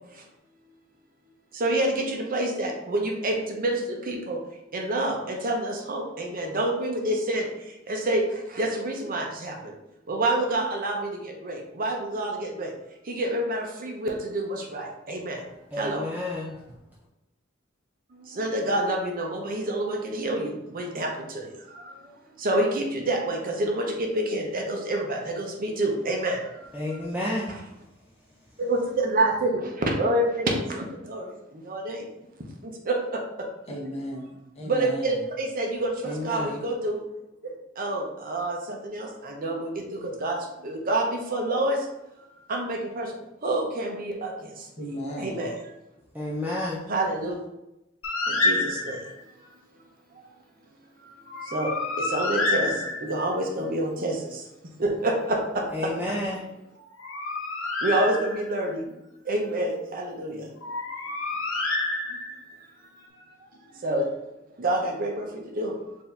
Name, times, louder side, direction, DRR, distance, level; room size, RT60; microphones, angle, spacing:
voice 1, 1.5-4.4 4.7-9.7 10.1-12.7 13.0-15.4 15.8-16.0 18.1-22.1 22.4-27.0 27.5-27.6 28.6-32.1 32.6-33.5 34.7-37.0 37.4-41.9 42.5-44.9 45.2-45.5 46.9-47.4 48.3-49.1 51.0-54.5 54.8-55.9 57.8-58.9 59.2-60.5 62.1-62.2 63.1-63.2 63.7-64.1 64.6-65.8, right 1 dB, 45° right, 1 dB, 0.7 m, -28 dB
voice 2, 15.7-16.6 26.7-27.5 36.0-36.6 46.1-46.8 55.7-56.4, left 1 dB, 10° right, -5 dB, 0.5 m, -30 dB
voice 3, 33.7-35.2 44.8-45.5, equal, 35° left, -1 dB, 0.9 m, -35 dB
Bird, 48.0-49.2 51.3-53.3 56.8-58.6 60.6-62.5, left 2 dB, 80° left, 0.8 m, -28 dB
4.5 x 2.7 x 3.3 m, 0.90 s
head